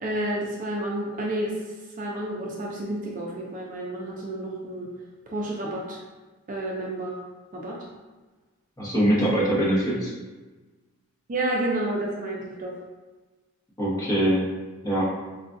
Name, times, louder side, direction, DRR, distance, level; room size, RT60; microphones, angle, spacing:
voice 1, 0.0-4.9 5.2-6.0 6.5-7.2 7.5-7.8 9.3-9.5 11.3-12.7, right 1 dB, 35° right, -3 dB, 0.4 m, -30 dB
voice 2, 8.8-10.1 13.8-14.4 14.8-15.0, right 1 dB, 15° left, -7 dB, 1.0 m, -23 dB
4.6 x 2.4 x 2.5 m, 1.3 s
head